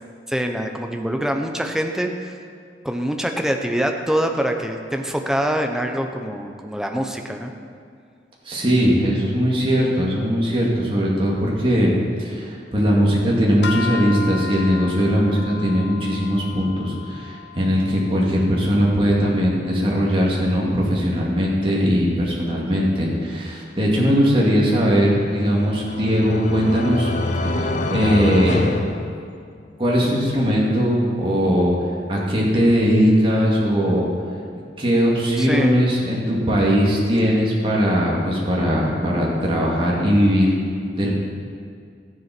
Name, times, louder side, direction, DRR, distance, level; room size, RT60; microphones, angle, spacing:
voice 1, 0.3-2.4 2.8-7.5 35.4-35.7, equal, 5° right, 3 dB, 0.8 m, -24 dB
voice 2, 8.4-11.9 12.2-27.1 27.4-28.7 29.8-31.7 32.1-34.1 34.8-40.5 41.0-41.1, equal, 30° right, -5 dB, 2.3 m, -19 dB
sound 1, 13.6-20.0, left 5 dB, 80° left, 0.9 m, -35 dB
sound 2, 25.2-29.8, left 2 dB, 45° left, 0.7 m, -26 dB
14.0 x 7.7 x 6.0 m, 2.2 s
head